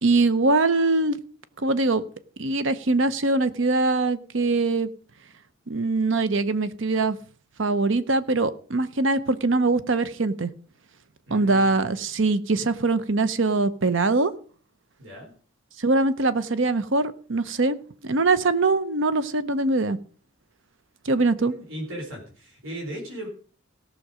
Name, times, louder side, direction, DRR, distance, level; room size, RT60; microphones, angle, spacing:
voice 1, 0.0-1.2 1.6-2.0 2.4-4.9 5.7-7.2 7.6-10.5 11.3-14.3 15.8-17.8 18.0-20.0 21.0-21.5, right 3 dB, 65° right, 13 dB, 0.8 m, -22 dB
voice 2, 11.3-11.9 15.0-15.3 21.4-23.3, equal, 85° right, -1 dB, 4.0 m, -37 dB
17.0 x 6.5 x 5.0 m, 0.43 s
head